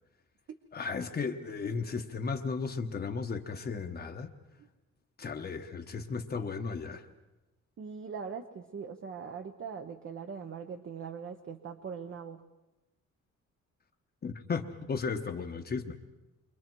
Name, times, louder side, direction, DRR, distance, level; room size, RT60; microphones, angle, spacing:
voice 1, 0.7-4.3 5.2-7.1 14.2-16.0, left 5 dB, 35° left, 4 dB, 1.0 m, -35 dB
voice 2, 7.8-12.4, right 6 dB, 45° right, 6 dB, 0.9 m, -41 dB
29.0 x 24.5 x 4.6 m, 1.0 s
wide cardioid pair, 165°, 29 cm